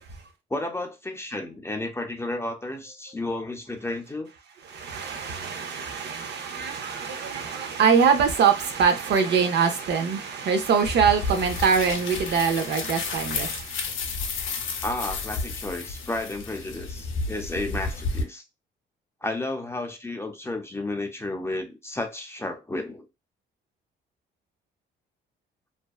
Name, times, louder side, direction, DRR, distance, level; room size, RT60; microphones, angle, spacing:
voice 1, 0.5-4.3 14.8-18.4 19.2-23.1, left 2 dB, 15° left, 0.5 m, -32 dB
voice 2, 4.6-13.8, right 6 dB, 60° right, 0.6 m, -23 dB
sound 1, 10.8-18.2, left 3 dB, 75° left, 0.6 m, -32 dB
2.6 x 2.1 x 2.3 m
cardioid pair, 90°, 20 cm